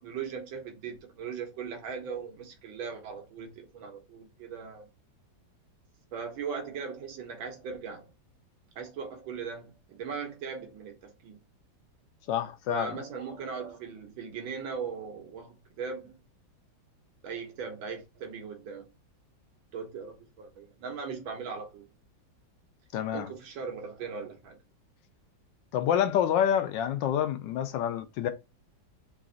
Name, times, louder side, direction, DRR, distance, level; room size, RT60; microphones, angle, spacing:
voice 1, 0.0-4.9 6.1-8.1 8.8-11.4 12.7-16.2 17.2-18.9 19.7-21.9 23.1-24.6, right 6 dB, 85° right, 1.7 m, -39 dB
voice 2, 12.3-13.0 22.9-23.3 25.7-28.3, left 9 dB, 75° left, 1.2 m, -27 dB
3.9 x 2.5 x 3.8 m
omnidirectional pair, 2.1 m